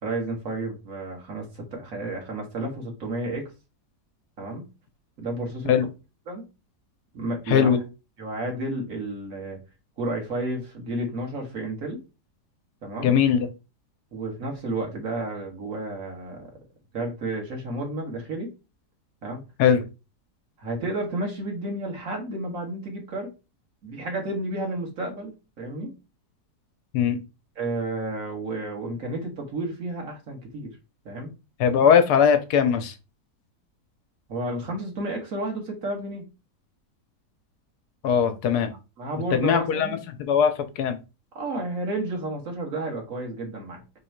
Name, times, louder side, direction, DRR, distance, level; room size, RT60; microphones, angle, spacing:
voice 1, 0.0-3.5 4.4-4.7 5.2-5.8 6.3-6.4 7.1-7.7 8.2-9.6 10.0-12.0 12.8-13.1 14.1-16.5 16.9-18.5 19.2-19.4 20.6-23.3 23.8-25.9 27.6-30.7 31.0-31.3 34.3-36.2 39.0-40.0 41.3-43.8, right 2 dB, 55° right, 1.7 m, -31 dB
voice 2, 7.5-7.8 13.0-13.5 19.6-19.9 26.9-27.2 31.6-32.9 38.0-38.7 39.3-39.9 40.2-41.0, left 7 dB, 75° left, 1.2 m, -20 dB
3.7 x 3.1 x 4.4 m
omnidirectional pair, 1.7 m